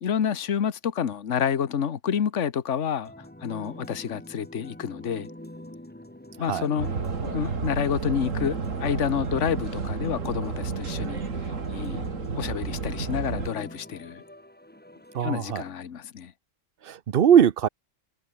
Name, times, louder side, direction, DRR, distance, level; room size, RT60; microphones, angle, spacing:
voice 1, 0.0-3.1 3.4-5.3 6.4-6.9 7.2-12.1 12.4-14.2 15.2-16.3, left 8 dB, 65° left, 1.5 m, -29 dB
sound 1, 3.0-15.7, left 1 dB, 5° left, 1.7 m, -43 dB
sound 2, 6.8-13.5, right 5 dB, 75° right, 2.3 m, -31 dB
voice 2, 15.1-15.6 16.8-17.7, right 9 dB, 50° right, 0.9 m, -20 dB
omnidirectional pair, 1.4 m